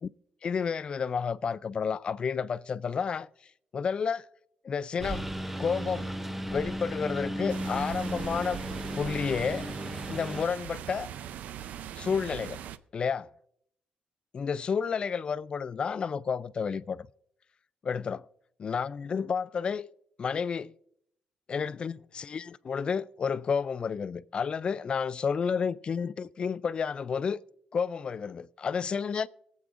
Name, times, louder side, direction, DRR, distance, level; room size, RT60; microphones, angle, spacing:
voice 1, 0.4-3.3 3.7-4.3 4.6-5.3 5.6-6.1 6.5-8.6 8.9-9.7 10.1-11.1 12.0-12.6 12.9-13.3 14.3-17.1 17.8-18.3 18.6-19.9 20.2-20.7 21.5-27.4 27.7-29.3, left 6 dB, 40° left, 0.3 m, -31 dB
Engine, 5.0-10.5, right 1 dB, 10° right, 0.6 m, -35 dB
sound 1, 7.5-12.8, right 10 dB, 85° right, 0.5 m, -41 dB
23.5 x 8.3 x 2.5 m
cardioid pair, 130°, 3 cm